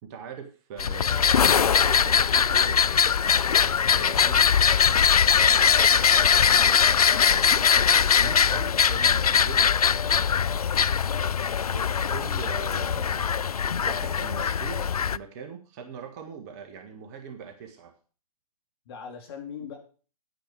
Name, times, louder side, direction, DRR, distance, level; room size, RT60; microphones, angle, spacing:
voice 1, 0.0-2.8 3.9-4.6 7.2-9.7 11.7-13.3 13.8-14.8 15.1-17.9, right 6 dB, 25° right, 5 dB, 1.5 m, -41 dB
sound 1, 0.8-15.2, left 7 dB, 70° left, 0.5 m, -21 dB
voice 2, 5.6-6.7 10.3-10.6 18.9-19.8, left 6 dB, 40° left, 3 dB, 3.5 m, -41 dB
10.5 x 9.2 x 4.7 m, 0.37 s
figure-of-eight pair, 130°, 20 cm